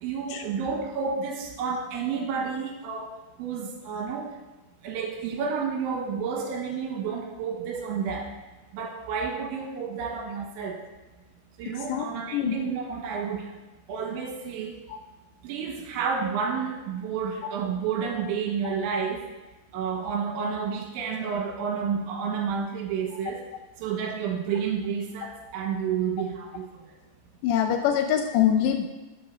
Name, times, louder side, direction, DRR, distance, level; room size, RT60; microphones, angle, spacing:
voice 1, 0.0-4.3 4.8-8.3 8.7-10.8 11.6-13.5 13.9-14.8 15.4-19.3 19.7-23.5 23.8-26.7, right 6 dB, 80° right, 2 dB, 3.4 m, -30 dB
voice 2, 27.4-28.9, left 9 dB, 80° left, 6 dB, 2.6 m, -23 dB
10.0 x 7.9 x 6.4 m, 1.1 s
omnidirectional pair, 5.6 m